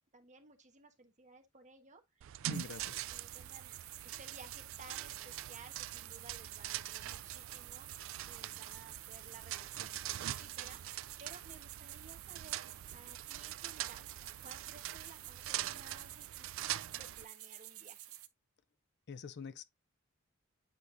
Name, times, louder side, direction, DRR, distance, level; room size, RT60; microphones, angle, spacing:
voice 1, 0.1-14.1 14.4-18.1, right 3 dB, 35° right, 1.3 m, -58 dB
sound 1, 2.2-17.2, right 12 dB, 65° right, 0.3 m, -43 dB
voice 2, 2.4-3.0 19.1-19.6, left 5 dB, 50° left, 0.5 m, -45 dB
sound 2, 2.5-18.3, right 14 dB, 85° right, 0.8 m, -50 dB
8.6 x 4.8 x 2.6 m
head